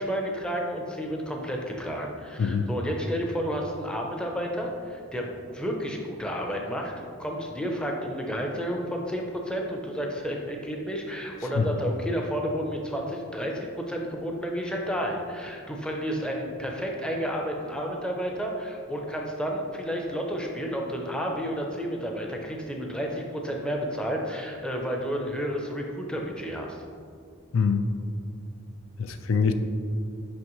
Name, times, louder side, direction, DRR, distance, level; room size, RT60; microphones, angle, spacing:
voice 1, 0.0-26.8, equal, 5° left, 0 dB, 0.5 m, -31 dB
voice 2, 2.4-2.7 11.5-11.8 27.5-27.9 29.0-29.5, left 5 dB, 75° left, 8 dB, 0.4 m, -24 dB
6.1 x 5.4 x 3.0 m, 2.4 s
head